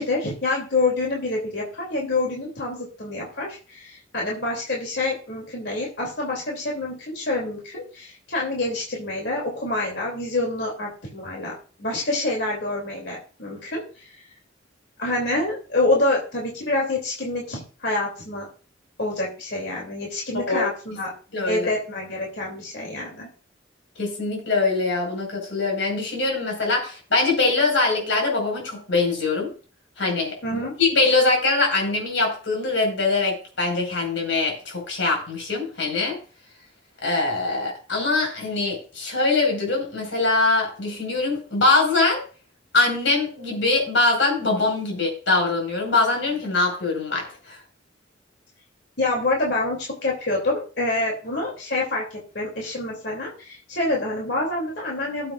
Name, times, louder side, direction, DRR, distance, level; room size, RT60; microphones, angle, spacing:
voice 1, 0.0-14.2 15.0-18.5 19.0-21.1 21.4-23.3 30.4-30.7 49.0-55.3, left 2 dB, 65° left, -1 dB, 2.7 m, -27 dB
voice 2, 21.3-21.7 24.0-29.5 30.0-36.2 37.0-42.2 42.7-47.6, left 3 dB, 80° left, 1 dB, 4.8 m, -23 dB
18.5 x 7.6 x 2.4 m, 0.38 s
head